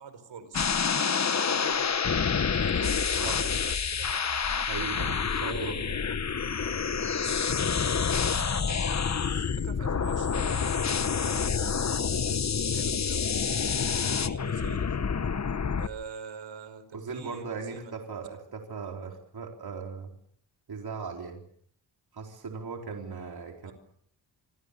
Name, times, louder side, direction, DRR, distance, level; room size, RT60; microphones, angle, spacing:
voice 1, 0.0-2.0 2.5-4.4 5.4-5.8 8.1-8.9 9.3-13.3 14.2-15.0 15.7-17.9 23.6-23.7, right 6 dB, 75° right, 11 dB, 5.2 m, -45 dB
sound 1, 0.5-15.9, left 6 dB, 35° left, 1.2 m, -28 dB
voice 2, 4.6-5.9 16.9-20.1 20.7-21.4 22.1-23.7, right 5 dB, 55° right, 1 dB, 4.3 m, -38 dB
26.5 x 25.5 x 6.9 m, 0.67 s
wide cardioid pair, 105°, 45 cm